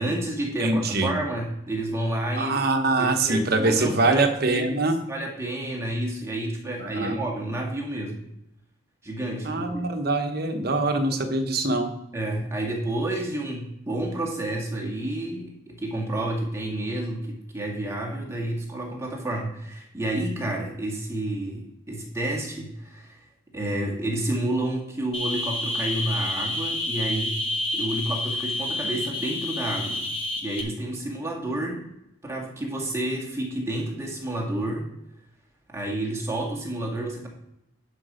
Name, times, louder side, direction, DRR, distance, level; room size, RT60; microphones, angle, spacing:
voice 1, 0.0-2.6 3.0-8.3 9.0-9.8 12.1-23.2 23.5-27.4 27.7-30.1 30.4-31.8 32.2-34.9 35.7-37.3, right 1 dB, 15° right, 0 dB, 1.7 m, -30 dB
voice 2, 0.6-1.1 2.3-5.0 6.8-7.2 9.4-11.9, right 2 dB, 50° right, 6 dB, 1.1 m, -24 dB
sound 1, 25.1-30.6, left 1 dB, 25° left, 1.1 m, -29 dB
11.0 x 5.0 x 5.0 m, 0.83 s
head